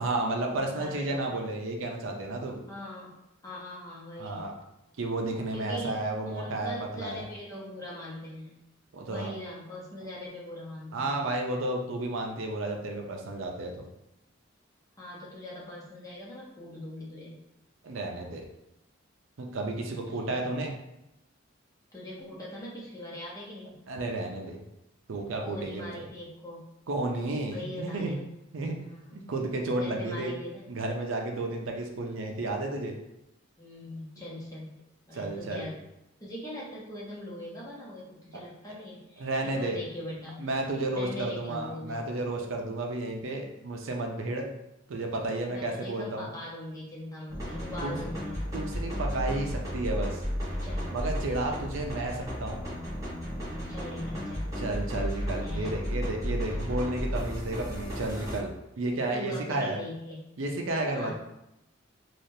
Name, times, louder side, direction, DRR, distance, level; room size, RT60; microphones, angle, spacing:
voice 1, 0.0-2.6 4.2-4.5 5.0-7.2 8.9-9.3 10.9-13.8 17.8-18.4 19.4-20.7 23.9-24.6 25.1-25.9 26.9-28.2 28.5-28.8 29.1-30.3 30.7-32.9 35.1-35.7 38.7-38.8 39.2-39.8 40.4-44.5 44.9-46.3 47.8-48.0 48.5-50.2 50.9-52.6 54.6-59.8 60.4-61.1, right 2 dB, 85° right, 1 dB, 0.5 m, -32 dB
voice 2, 0.5-1.3 2.7-3.1 3.4-4.5 5.5-6.0 6.3-8.5 9.1-11.2 15.0-17.4 20.2-20.3 21.9-23.8 25.4-26.7 27.5-28.3 28.8-29.0 29.8-30.6 33.6-34.7 35.1-35.9 36.2-40.4 40.9-42.0 45.5-48.4 50.6-50.9 51.4-51.7 53.7-54.5 55.4-55.7 59.1-60.2 60.9-61.1, left 1 dB, 15° left, -6 dB, 0.8 m, -41 dB
sound 1, 47.3-58.4, equal, 15° right, 0.9 m, -34 dB
3.3 x 2.4 x 2.7 m, 0.88 s
head